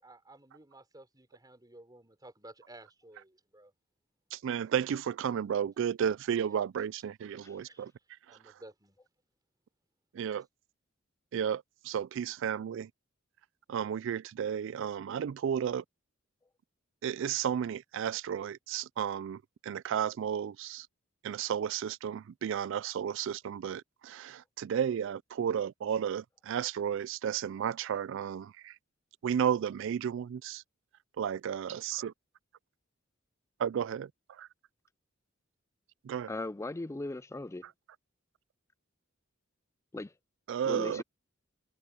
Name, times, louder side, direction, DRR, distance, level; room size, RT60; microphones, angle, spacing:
voice 1, 0.0-3.7 7.6-7.8 8.3-9.0, right 1 dB, 20° right, 5.9 m, -54 dB
voice 2, 4.3-7.9 8.3-8.4 10.1-10.5 11.3-12.9 13.7-15.8 17.0-20.9 21.2-28.8 29.2-30.6 31.2-32.1 33.6-34.5 36.0-36.3 37.6-37.7 40.5-41.0, right 8 dB, 65° right, 0.3 m, -33 dB
voice 3, 36.3-37.7 39.9-40.1 40.7-41.0, left 2 dB, 15° left, 0.4 m, -37 dB
head